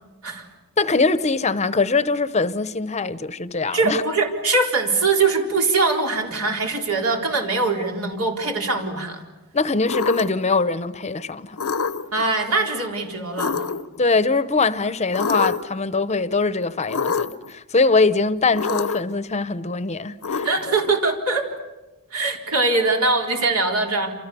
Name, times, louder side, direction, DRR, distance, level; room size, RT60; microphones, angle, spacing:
voice 1, 0.8-4.0 9.5-11.6 14.0-20.5, left 3 dB, 30° left, 0.8 m, -22 dB
voice 2, 3.7-9.2 12.1-13.7 20.4-21.5 22.1-24.1, right 3 dB, 75° right, 4.0 m, -22 dB
sound 1, 9.9-10.5 11.6-12.2 13.4-14.0 15.1-15.8 16.9-17.5 18.5-19.2 20.2-20.9, left 5 dB, 85° left, 0.9 m, -26 dB
28.0 x 28.0 x 6.9 m
head